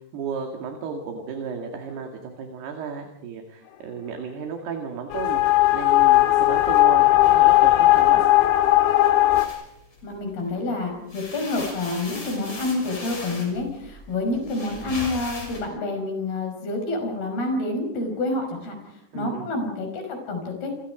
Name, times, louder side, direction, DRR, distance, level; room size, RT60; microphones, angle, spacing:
voice 1, 0.1-5.4 5.7-8.3 19.1-19.5, right 6 dB, 60° right, 3 dB, 3.9 m, -33 dB
sound 1, 5.1-9.5, left 16 dB, 75° left, 3.6 m, -17 dB
sound 2, 9.4-10.5 10.9-15.6, left 2 dB, 30° left, 6.9 m, -38 dB
voice 2, 10.0-18.8 19.1-20.7, left 2 dB, 55° left, 4 dB, 7.3 m, -28 dB
29.0 x 23.5 x 5.1 m, 0.79 s
omnidirectional pair, 5.5 m